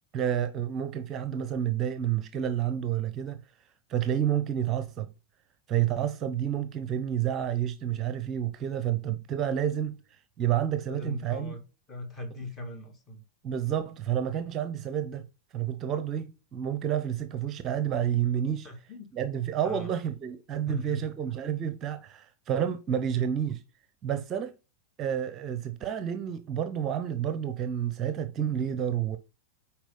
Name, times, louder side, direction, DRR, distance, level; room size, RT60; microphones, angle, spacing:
voice 1, 0.1-3.4 3.9-5.1 5.7-10.0 10.4-11.6 13.4-15.2 15.5-18.7 19.1-23.6 24.0-24.5 25.0-29.2, right 10 dB, 30° right, 0.7 m, -29 dB
voice 2, 10.9-11.6 11.9-13.2 18.6-19.1 19.6-19.9 20.7-21.1, left 1 dB, 20° left, 2.3 m, -39 dB
9.1 x 4.5 x 3.9 m
figure-of-eight pair, 90°, 0 cm